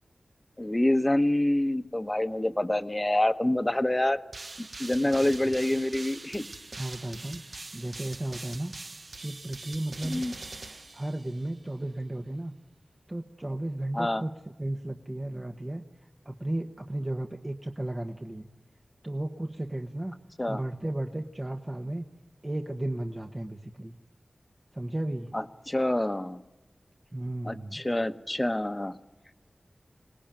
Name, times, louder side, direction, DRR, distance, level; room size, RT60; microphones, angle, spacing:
voice 1, 0.6-4.2 4.8-6.4 10.0-10.3 13.9-14.2 20.4-20.6 25.3-26.4 27.4-29.0, left 1 dB, 20° left, 10 dB, 1.1 m, -26 dB
sound 1, 4.3-11.6, right 3 dB, 60° right, 1.0 m, -43 dB
voice 2, 6.8-7.4 7.7-8.7 9.2-10.2 10.9-12.5 13.1-15.8 16.2-18.5 19.0-20.1 20.5-22.1 22.4-24.0 24.7-25.3 27.1-27.8, right 1 dB, 30° right, 4 dB, 1.2 m, -34 dB
26.0 x 18.5 x 9.0 m, 1.1 s
wide cardioid pair, 75°, 0 cm